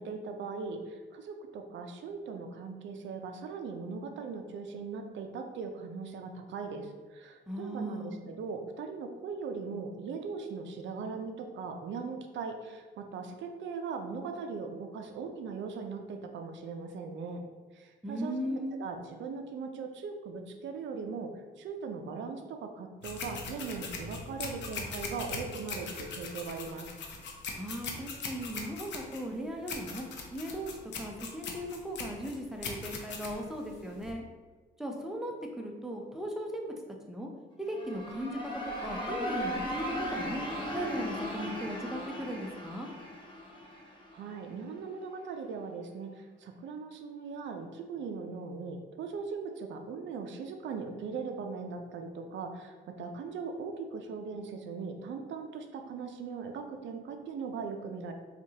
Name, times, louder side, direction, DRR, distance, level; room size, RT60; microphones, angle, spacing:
voice 1, 0.0-17.4 17.7-21.3 21.6-26.9 44.1-58.1, right 5 dB, 70° right, 5 dB, 0.5 m, -39 dB
voice 2, 7.5-8.2 18.0-18.8 27.6-34.2 34.8-36.7 37.1-37.3 37.6-40.4 40.7-42.9, equal, ahead, 0 dB, 0.6 m, -37 dB
sound 1, 23.0-34.1, left 4 dB, 65° left, 0.7 m, -40 dB
sound 2, 37.6-44.4, equal, 25° left, 0.8 m, -37 dB
4.5 x 2.4 x 2.8 m, 1.4 s
cardioid pair, 90°, 20 cm